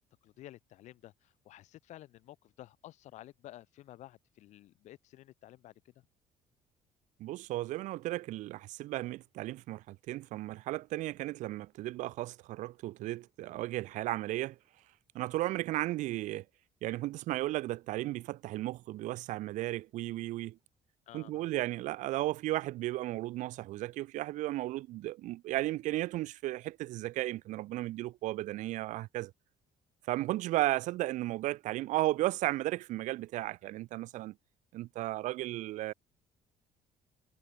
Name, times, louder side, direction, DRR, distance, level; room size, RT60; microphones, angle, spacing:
voice 1, 0.2-5.7 21.1-21.6, left 14 dB, 60° left, 3.1 m, -52 dB
voice 2, 7.2-14.6 15.1-16.4 16.8-20.6 21.1-29.3 30.1-34.3 34.7-35.9, right 17 dB, 70° right, 0.7 m, -34 dB
cardioid pair, 175°, 13 cm